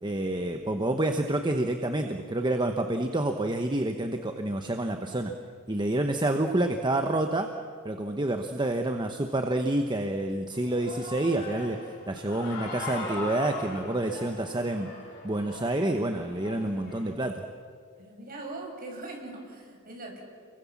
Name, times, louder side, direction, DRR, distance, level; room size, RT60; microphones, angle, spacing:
voice 1, 0.0-5.3 5.7-7.5 7.8-14.9 15.2-17.4, right 1 dB, 20° right, 5 dB, 1.0 m, -28 dB
Human voice / Cheering, 10.5-17.1, left 2 dB, 50° left, 6.1 m, -40 dB
voice 2, 18.0-20.2, right 2 dB, 40° right, 1 dB, 6.5 m, -41 dB
29.5 x 23.5 x 7.3 m, 2.1 s
head